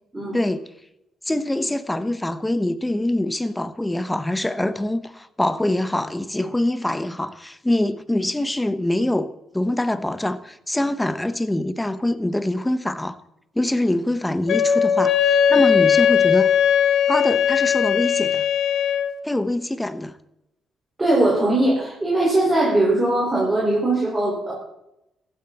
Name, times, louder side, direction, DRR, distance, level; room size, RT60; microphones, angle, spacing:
voice 1, 0.3-0.6 1.3-13.2 13.5-16.5 17.1-18.4 19.2-20.1, left 1 dB, 10° left, 1.1 m, -24 dB
Wind instrument woodwind instrument, 14.5-19.1, left 8 dB, 70° left, 1.4 m, -18 dB
voice 2, 21.0-24.5, right 2 dB, 20° right, 5.3 m, -20 dB
15.5 x 12.0 x 4.3 m
cardioid pair, 90°, 0 cm